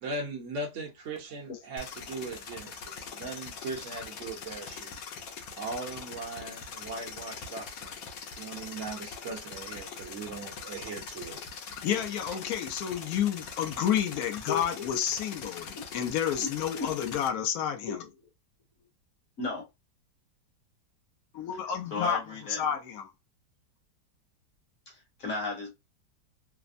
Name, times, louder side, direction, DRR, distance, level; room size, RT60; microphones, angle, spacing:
voice 1, 0.0-5.0 5.6-7.9 8.4-11.4 12.3-12.4, right 3 dB, 55° right, 0.9 m, -39 dB
sound 1, 1.8-17.3, left 6 dB, 85° left, 1.3 m, -42 dB
voice 2, 11.8-18.0 21.3-22.2 22.6-23.1, left 9 dB, 65° left, 1.0 m, -30 dB
voice 3, 21.9-22.6 24.9-25.7, left 3 dB, 50° left, 1.3 m, -34 dB
3.3 x 2.0 x 2.5 m
omnidirectional pair, 1.9 m